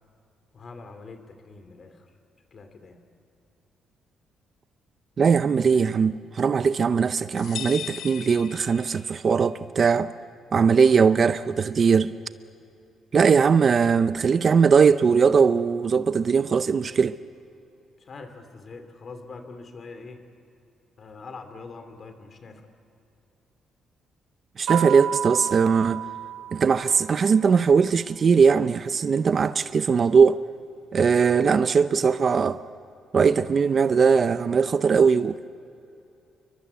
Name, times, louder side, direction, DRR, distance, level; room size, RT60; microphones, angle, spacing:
voice 1, 0.5-2.1 2.5-3.0 18.0-20.2 21.0-22.7, left 4 dB, 35° left, 2.8 m, -43 dB
voice 2, 5.2-10.1 10.5-12.1 13.1-17.2 24.6-26.0 26.5-30.4 30.9-32.6 33.1-35.4, right 6 dB, 35° right, 0.6 m, -20 dB
sound 1, 7.4-9.3, left 10 dB, 60° left, 0.6 m, -38 dB
sound 2, 24.7-27.4, right 11 dB, 75° right, 4.3 m, -31 dB
29.0 x 23.5 x 8.2 m
cardioid pair, 145°, 0 cm